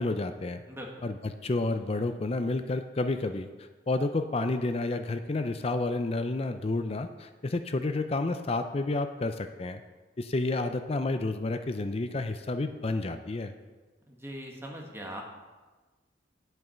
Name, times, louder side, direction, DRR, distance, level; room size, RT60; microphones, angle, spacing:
voice 1, 0.0-0.6 1.0-3.5 3.9-9.8 10.2-13.5, left 2 dB, 35° left, 8 dB, 0.5 m, -30 dB
voice 2, 0.7-1.1 14.1-15.2, equal, 15° right, 0 dB, 1.6 m, -41 dB
9.6 x 7.8 x 5.7 m, 1.3 s
head